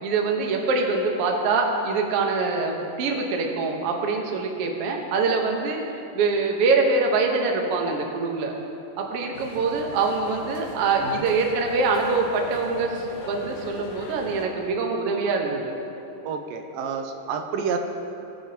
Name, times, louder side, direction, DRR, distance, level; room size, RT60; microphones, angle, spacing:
voice 1, 0.0-5.8 6.1-8.5 9.0-15.7, right 4 dB, 65° right, 1 dB, 1.5 m, -24 dB
sound 1, 9.3-14.4, left 3 dB, 65° left, 2.2 m, -40 dB
voice 2, 16.2-17.8, right 6 dB, 85° right, 5 dB, 2.4 m, -29 dB
20.5 x 7.9 x 2.9 m, 2.8 s
omnidirectional pair, 4.0 m